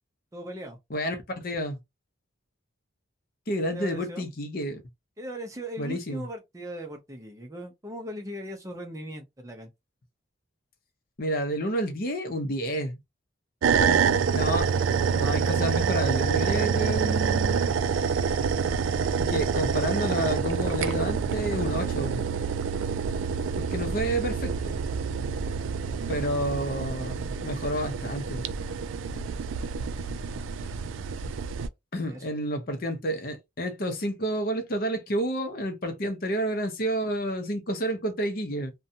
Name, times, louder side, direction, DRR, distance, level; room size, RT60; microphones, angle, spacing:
voice 1, 0.3-0.8 3.7-4.3 5.2-9.7 13.6-14.0 32.1-32.3, equal, 15° right, 0.5 m, -39 dB
voice 2, 0.9-1.8 3.5-4.8 5.8-6.2 11.2-13.0 13.8-14.0 14.3-14.7 15.1-17.8 19.2-22.2 23.6-24.8 26.1-28.5 31.9-38.7, equal, 50° left, 0.6 m, -30 dB
sound 1, 13.6-31.7, right 6 dB, 75° right, 0.3 m, -27 dB
2.6 x 2.2 x 2.7 m
head